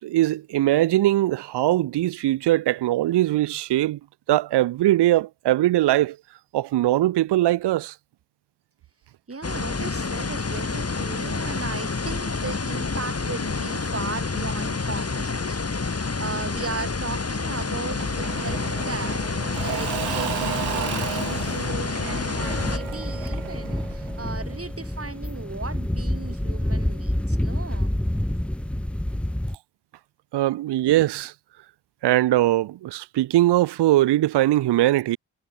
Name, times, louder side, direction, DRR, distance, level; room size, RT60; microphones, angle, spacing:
voice 1, 0.0-4.0 4.3-6.2 6.5-7.9 30.3-31.3 32.0-35.2, right 15 dB, 65° right, 0.8 m, -21 dB
voice 2, 9.3-27.9, right 3 dB, 30° right, 7.2 m, -36 dB
sound 1, 9.4-22.8, left 4 dB, 35° left, 5.2 m, -28 dB
Engine / Mechanisms / Drill, 18.0-24.7, right 24 dB, 85° right, 1.0 m, -34 dB
sound 2, 22.4-29.5, left 1 dB, 5° left, 0.6 m, -28 dB
hypercardioid pair, 45°, 44 cm